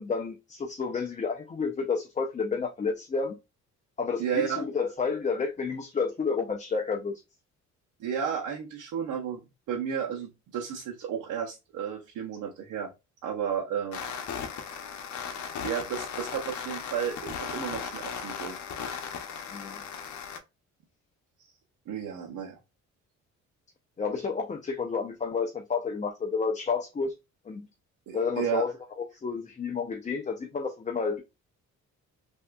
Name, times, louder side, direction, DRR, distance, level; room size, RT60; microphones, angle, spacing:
voice 1, 0.0-3.4 4.0-7.2 19.5-19.8 24.0-27.1 27.5-27.7 28.1-28.7 29.0-31.2, left 5 dB, 25° left, 0.6 m, -30 dB
voice 2, 4.2-4.6 8.0-9.4 9.7-12.9 13.2-14.0 15.6-18.5 21.9-22.6 28.1-28.6, right 8 dB, 85° right, 0.9 m, -32 dB
sound 1, 13.9-20.4, left 7 dB, 70° left, 0.8 m, -37 dB
3.3 x 2.7 x 2.2 m
cardioid pair, 90°, 30 cm